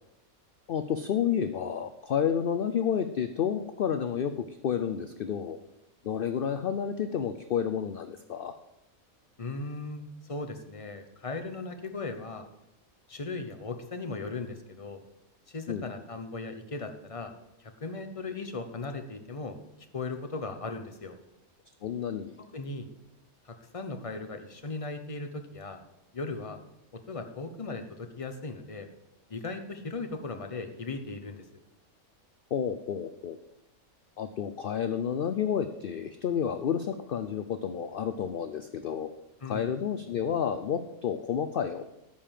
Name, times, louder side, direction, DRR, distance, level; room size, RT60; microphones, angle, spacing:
voice 1, 0.7-5.6 6.0-8.6 15.7-15.9 21.8-22.4 32.5-33.4 34.2-39.1 39.5-41.8, left 8 dB, 60° left, 9 dB, 0.6 m, -30 dB
voice 2, 9.4-12.5 13.1-15.0 15.5-17.3 17.6-19.6 19.9-21.2 22.4-22.9 23.4-25.8 26.1-26.6 26.9-28.9 29.3-31.4 39.4-39.7, left 3 dB, 30° left, 7 dB, 0.8 m, -37 dB
12.5 x 5.1 x 7.4 m, 0.87 s
omnidirectional pair, 1.5 m